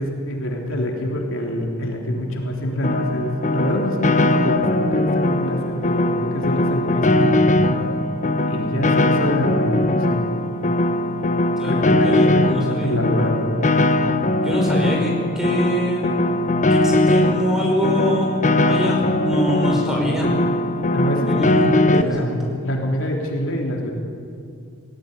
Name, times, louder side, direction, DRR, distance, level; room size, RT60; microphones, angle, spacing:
voice 1, 0.0-7.9 8.5-10.2 11.6-13.5 20.8-21.4 21.8-23.9, equal, 60° left, 0 dB, 3.6 m, -25 dB
Piano, 2.8-22.0, left 2 dB, 35° left, 0.9 m, -20 dB
voice 2, 11.6-13.0 14.4-16.3 16.7-20.3 21.3-21.6 22.0-22.3, equal, ahead, -1 dB, 5.1 m, -24 dB
20.0 x 19.0 x 9.9 m, 2.4 s
head